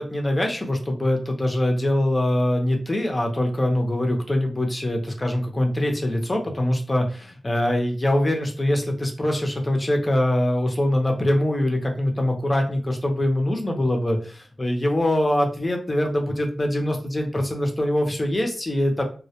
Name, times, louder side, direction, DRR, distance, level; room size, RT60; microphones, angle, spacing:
voice 1, 0.0-19.0, left 1 dB, 25° left, 2 dB, 0.6 m, -23 dB
2.2 x 2.1 x 2.8 m, 0.39 s
wide cardioid pair, 100°, 0 cm